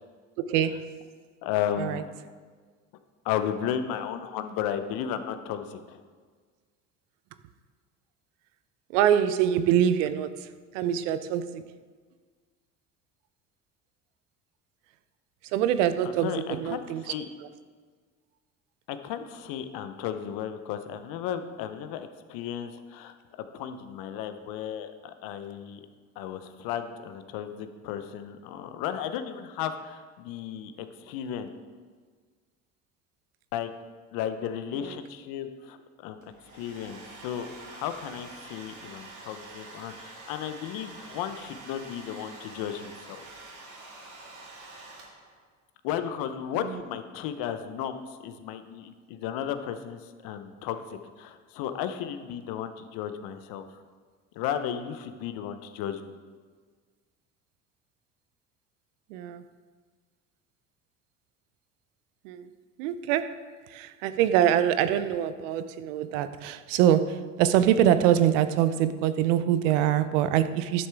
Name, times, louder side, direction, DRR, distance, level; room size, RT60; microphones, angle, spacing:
voice 1, 0.5-0.9 1.8-2.0 8.9-10.5 10.7-11.6 15.5-17.0 17.4-17.5 34.8-35.0 46.5-46.8 59.1-59.4 62.2-62.5 62.8-63.4 63.7-70.9, right 10 dB, 80° right, 12 dB, 0.6 m, -24 dB
voice 2, 1.4-2.1 3.2-6.0 16.0-17.3 18.9-23.2 23.5-25.8 26.2-31.5 33.5-33.7 34.1-36.2 36.5-43.2 45.8-53.7 54.3-56.1, left 9 dB, 70° left, 9 dB, 0.8 m, -34 dB
Domestic sounds home sounds, 36.2-45.4, right 3 dB, 55° right, 2.2 m, -46 dB
11.0 x 6.6 x 3.5 m, 1.6 s
hypercardioid pair, 70°, 37 cm